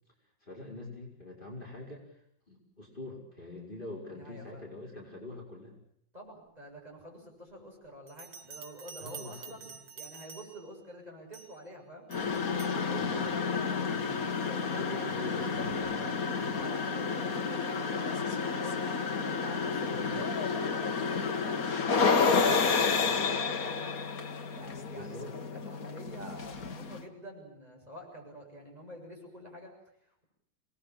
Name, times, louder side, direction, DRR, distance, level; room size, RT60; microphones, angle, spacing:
voice 1, 0.4-2.0 2.5-5.7 9.0-9.7 13.0-13.3 13.9-14.3 14.6-16.6 19.7-20.2 25.0-25.3, left 2 dB, 25° left, -2 dB, 5.4 m, -44 dB
voice 2, 4.1-4.6 6.1-9.6 10.0-14.0 14.5-15.6 16.5-18.8 19.2-24.0 24.5-25.2 25.5-30.2, equal, 20° right, 0 dB, 7.3 m, -48 dB
Bell, 8.1-10.8 11.3-11.6 12.1-12.8, right 6 dB, 90° right, 2.5 m, -48 dB
sound 1, 12.1-27.0, left 5 dB, 50° left, 1.9 m, -30 dB
26.5 x 20.0 x 8.7 m, 0.68 s
omnidirectional pair, 2.0 m